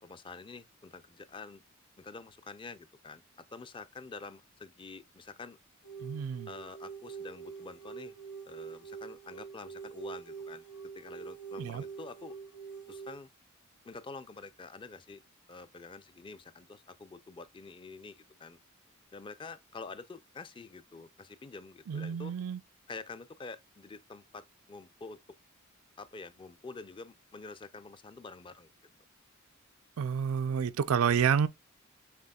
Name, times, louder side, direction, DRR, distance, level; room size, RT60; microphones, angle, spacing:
voice 1, 0.0-1.6 2.0-3.2 3.5-5.6 6.5-8.1 8.5-10.6 11.0-12.4 12.9-13.3 13.8-15.2 15.5-18.6 19.1-22.3 22.9-25.2 26.0-28.7, left 4 dB, 25° left, 0.4 m, -47 dB
sound 1, 5.8-13.2, right 6 dB, 90° left, 1.0 m, -45 dB
voice 2, 6.0-6.5 11.6-11.8 21.9-22.6 30.0-31.5, right 7 dB, 85° right, 0.4 m, -29 dB
6.6 x 3.5 x 2.3 m
head